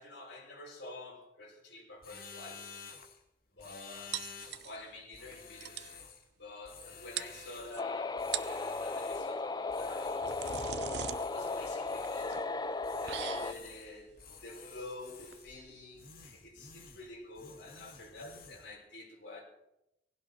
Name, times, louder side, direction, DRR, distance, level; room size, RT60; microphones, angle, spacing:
voice 1, 0.0-2.6 3.5-5.9 6.4-10.4 11.2-12.4 13.0-19.4, left 2 dB, 90° left, -4 dB, 6.5 m, -48 dB
sound 1, 2.0-3.2 3.6-4.7 5.1-6.3 6.6-7.8 8.2-9.4 9.7-10.8 11.0-12.4 12.8-13.9 14.2-15.6 16.0-17.1 17.4-18.7, left 5 dB, 55° left, 2.2 m, -51 dB
sound 2, 4.1-5.0 5.3-5.4 5.6-6.0 6.8-6.9 7.2-7.8 8.2-8.7 9.8-16.5, right 9 dB, 70° right, 0.7 m, -42 dB
sound 3, 7.8-13.5, left 3 dB, 25° left, 0.6 m, -36 dB
19.0 x 16.5 x 4.4 m, 0.85 s
head